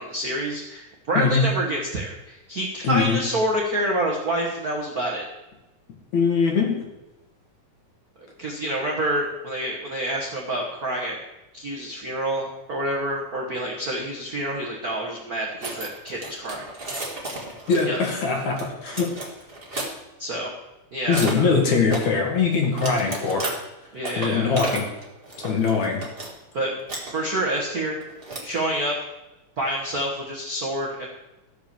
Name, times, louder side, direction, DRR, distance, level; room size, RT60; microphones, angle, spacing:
voice 1, 0.0-5.2 8.4-11.2 11.5-16.7 17.9-18.0 20.2-20.5 20.9-21.5 23.9-24.5 26.5-26.7 27.1-28.0 28.4-29.0 29.6-31.1, right 1 dB, 90° right, -2 dB, 0.8 m, -27 dB
voice 2, 2.8-3.2 6.1-6.8 17.7-18.6 18.8-19.1 21.1-23.5 24.2-24.8 25.4-26.0, left 5 dB, 65° left, 1 dB, 3.1 m, -21 dB
Toolbox search, 15.6-19.9 21.1-21.3 21.9-22.1 22.6-23.5 24.0-26.3 26.6-27.1 28.0-28.6, right 2 dB, 25° right, 1.5 m, -33 dB
14.0 x 5.1 x 6.8 m, 1.0 s
omnidirectional pair, 3.7 m